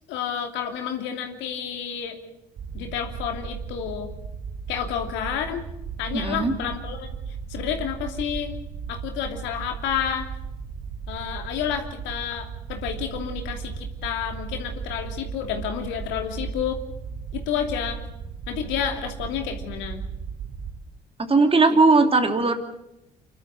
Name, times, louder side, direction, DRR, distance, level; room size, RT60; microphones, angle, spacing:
voice 1, 0.1-2.2 2.7-4.1 4.7-5.6 6.0-7.1 7.5-8.5 8.9-10.3 11.1-16.8 17.3-18.0 18.5-20.1 22.0-22.1, left 8 dB, 65° left, 4 dB, 2.9 m, -30 dB
sound 1, 2.6-20.8, right 6 dB, 55° right, 2.5 m, -36 dB
voice 2, 6.1-6.5 21.3-22.5, right 3 dB, 30° right, 6 dB, 2.8 m, -18 dB
29.5 x 12.5 x 7.7 m, 0.86 s
figure-of-eight pair, 50°, 20 cm